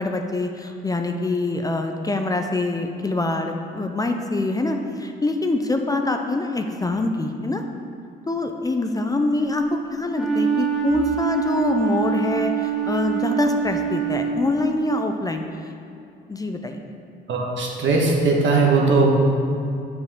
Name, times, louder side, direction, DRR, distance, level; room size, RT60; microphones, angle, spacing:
voice 1, 0.0-7.6 8.3-15.4 16.3-16.8, left 2 dB, 20° left, 4 dB, 0.5 m, -24 dB
Wind instrument woodwind instrument, 10.1-14.6, right 8 dB, ahead, 1.5 m, -25 dB
voice 2, 17.3-19.1, right 3 dB, 70° right, -1 dB, 1.4 m, -19 dB
7.4 x 6.3 x 3.7 m, 2.6 s
cardioid pair, 90°, 20 cm